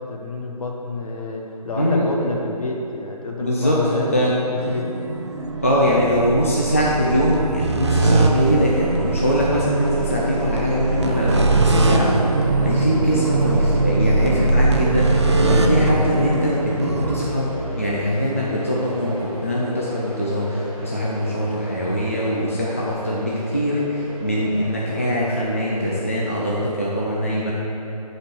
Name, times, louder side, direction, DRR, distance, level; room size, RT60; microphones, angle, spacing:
voice 1, 0.0-4.9 12.6-12.8, left 3 dB, 60° left, 0 dB, 1.3 m, -29 dB
voice 2, 1.8-2.1 3.4-4.3 5.6-12.1 12.4-27.5, equal, 20° left, -5 dB, 0.4 m, -22 dB
sound 1, 4.6-17.3, right 2 dB, 45° right, 0.5 m, -21 dB
sound 2, 7.8-26.1, left 1 dB, 5° left, 1.5 m, -36 dB
8.1 x 4.3 x 6.2 m, 2.9 s
hypercardioid pair, 175°, 20 cm